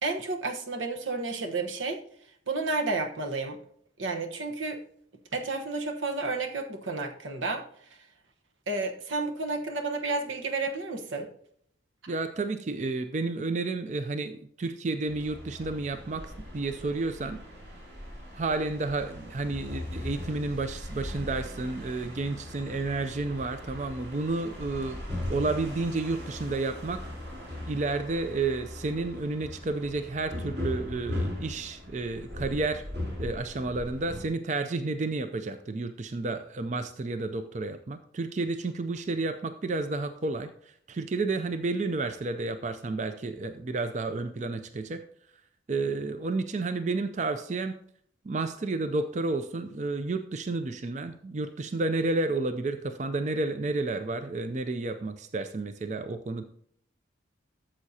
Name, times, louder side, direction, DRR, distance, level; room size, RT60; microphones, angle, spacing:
voice 1, 0.0-2.0 2.5-3.6 4.0-4.8 5.3-7.7 8.7-11.3 12.1-12.2, right 3 dB, 85° right, 5 dB, 1.1 m, -31 dB
voice 2, 12.1-17.4 18.3-25.0 25.3-27.0 27.7-32.8 33.2-40.5 40.9-45.0 45.7-47.7 48.3-56.4, right 3 dB, 40° right, 9 dB, 0.4 m, -31 dB
sound 1, 15.1-34.2, left 1 dB, 55° right, 4.2 m, -39 dB
13.0 x 7.4 x 2.8 m, 0.65 s
head